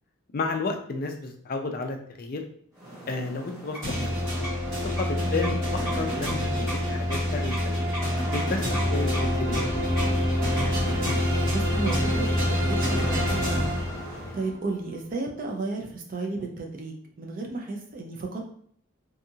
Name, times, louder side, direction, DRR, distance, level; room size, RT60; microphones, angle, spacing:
voice 1, 0.3-2.4 3.1-4.1 4.7-7.8 8.3-9.7 14.2-14.3, left 3 dB, 40° left, 4 dB, 0.3 m, -32 dB
sound 1, 2.7-14.5, right 1 dB, 15° right, 1.2 m, -40 dB
sound 2, 3.8-14.4, left 1 dB, 65° right, 1.3 m, -26 dB
voice 2, 5.2-5.6 11.1-13.8 14.1-18.5, right 3 dB, 40° right, 1 dB, 0.4 m, -34 dB
2.7 x 2.3 x 2.6 m, 0.62 s
head